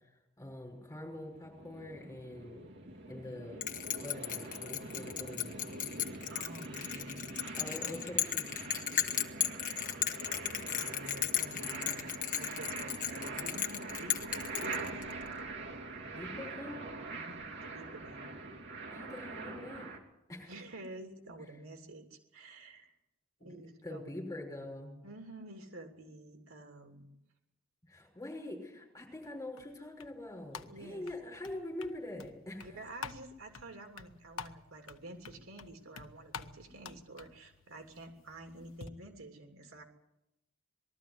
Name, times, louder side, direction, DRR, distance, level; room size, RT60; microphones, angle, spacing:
voice 1, 0.4-2.6 3.1-3.6 4.0-5.6 7.6-8.7 16.1-16.8 18.9-19.9 20.3-20.5 23.4-25.0 27.8-32.7, left 1 dB, 15° left, 0 dB, 5.8 m, -44 dB
sound 1, 1.1-20.0, right 3 dB, 55° right, 2.9 m, -44 dB
Bell, 3.6-15.3, left 11 dB, 40° left, 1.4 m, -35 dB
voice 2, 6.3-7.3 10.8-15.2 17.2-18.3 20.5-22.9 23.4-24.1 25.0-27.1 30.7-31.0 32.6-39.8, right 1 dB, 85° right, 4 dB, 3.0 m, -49 dB
sound 2, 29.2-38.9, left 5 dB, 85° left, 1.1 m, -50 dB
20.5 x 13.5 x 9.7 m, 0.88 s
head